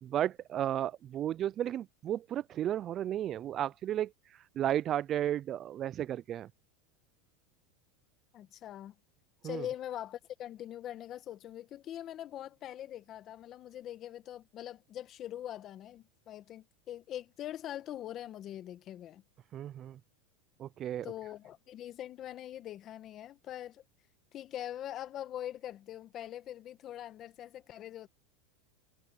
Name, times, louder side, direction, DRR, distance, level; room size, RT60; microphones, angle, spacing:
voice 1, 0.0-4.1 4.6-6.5 9.4-9.7 19.5-20.0 20.6-21.1, right 11 dB, 35° right, 0.4 m, -33 dB
voice 2, 8.3-8.9 9.4-19.2 21.0-23.8 24.3-28.1, left 11 dB, 40° left, 1.6 m, -43 dB
supercardioid pair, 125°, 0 cm